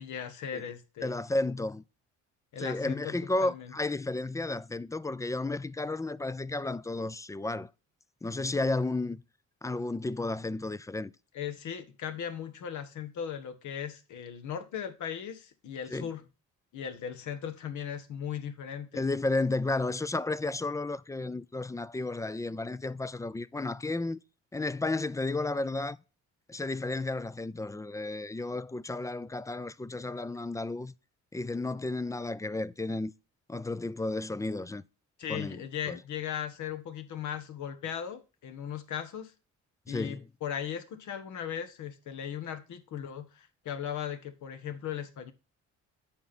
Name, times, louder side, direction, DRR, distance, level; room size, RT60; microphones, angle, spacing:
voice 1, 0.0-1.1 2.5-3.1 3.4-3.7 11.3-16.2 16.7-19.0 35.2-39.3 39.9-45.3, left 8 dB, 75° left, 1.4 m, -38 dB
voice 2, 1.0-1.8 2.6-7.7 8.2-9.2 9.6-11.1 15.9-16.1 18.9-24.2 24.5-26.0 26.5-30.9 31.3-33.1 33.5-34.8 35.3-35.6 35.9-36.0 39.9-40.3, left 2 dB, 10° left, 0.4 m, -32 dB
8.7 x 5.5 x 4.2 m
cardioid pair, 90°, 30 cm